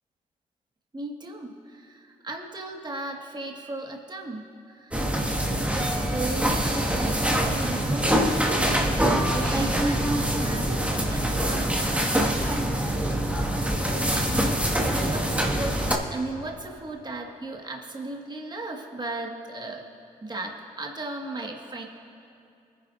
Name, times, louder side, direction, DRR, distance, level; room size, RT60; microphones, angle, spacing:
voice 1, 0.9-5.2 5.8-12.4 13.8-14.3 15.0-15.8 16.1-19.8 20.2-21.8, right 2 dB, 25° right, 1 dB, 1.8 m, -36 dB
sound 1, 4.9-15.9, right 1 dB, 5° right, 1.9 m, -24 dB
23.5 x 10.0 x 2.6 m, 2.6 s
hypercardioid pair, 40°, 17 cm